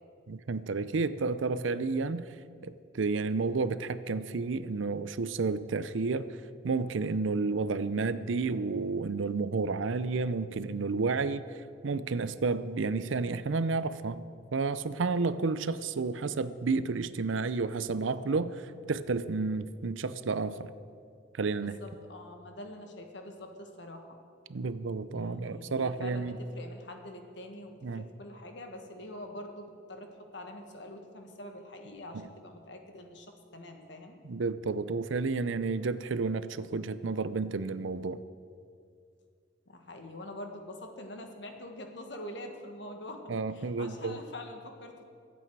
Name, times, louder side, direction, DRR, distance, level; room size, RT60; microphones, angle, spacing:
voice 1, 0.3-2.3 2.6-6.4 6.6-11.6 11.8-14.2 14.5-20.7 21.3-21.8 24.5-26.4 27.8-28.1 32.1-32.3 34.2-38.2 43.3-44.2, right 4 dB, 85° right, 14 dB, 0.6 m, -31 dB
voice 2, 21.6-24.2 25.1-34.1 39.7-43.2 43.5-45.0, left 1 dB, 65° left, 4 dB, 1.6 m, -45 dB
23.0 x 8.4 x 4.7 m, 2.3 s
head